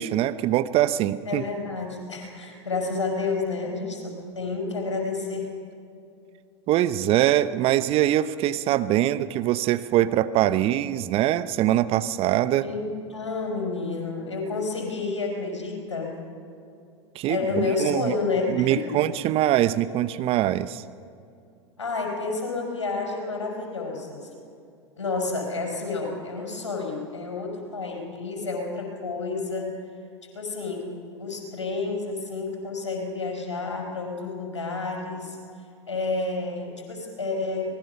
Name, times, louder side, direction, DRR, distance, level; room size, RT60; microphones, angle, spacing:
voice 1, 0.0-1.4 6.7-12.7 17.1-18.1 18.5-20.8, right 13 dB, 40° right, 14 dB, 0.8 m, -23 dB
voice 2, 1.3-5.5 12.6-16.2 17.3-19.0 21.8-24.3 25.0-29.8 30.3-30.9 31.1-35.4 35.9-37.7, left 3 dB, 85° left, 1 dB, 5.2 m, -30 dB
24.5 x 20.0 x 5.7 m, 2.5 s
figure-of-eight pair, 90°, 15 cm